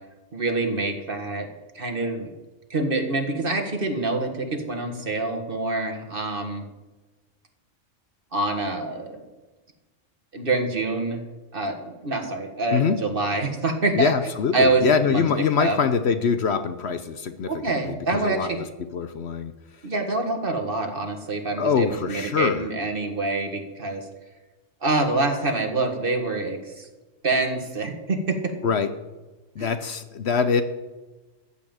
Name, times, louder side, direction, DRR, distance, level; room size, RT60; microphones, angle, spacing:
voice 1, 0.3-1.5 1.8-2.3 2.7-6.7 8.3-9.2 10.3-11.2 11.5-14.1 14.5-15.8 17.5-18.6 19.8-24.0 24.8-26.9 27.2-28.5 29.6-29.7, right 3 dB, 45° right, 4 dB, 1.8 m, -26 dB
voice 2, 14.0-18.6 18.9-19.5 21.6-22.7 28.6-28.9 29.6-30.6, left 6 dB, 60° left, 10 dB, 0.9 m, -24 dB
14.5 x 5.7 x 8.9 m, 1.2 s
omnidirectional pair, 1.3 m